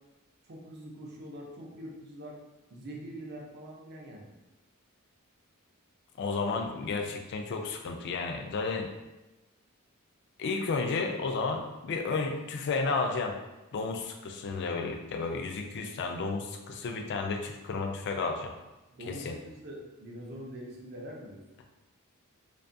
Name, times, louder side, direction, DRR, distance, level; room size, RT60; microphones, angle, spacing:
voice 1, 0.4-2.4 2.7-4.3 18.9-21.4, right 1 dB, 50° right, -1 dB, 0.5 m, -44 dB
voice 2, 6.2-8.9 10.4-13.4 13.7-18.5 19.1-19.4, left 4 dB, 50° left, 4 dB, 0.3 m, -32 dB
2.5 x 2.3 x 2.5 m, 1.1 s
head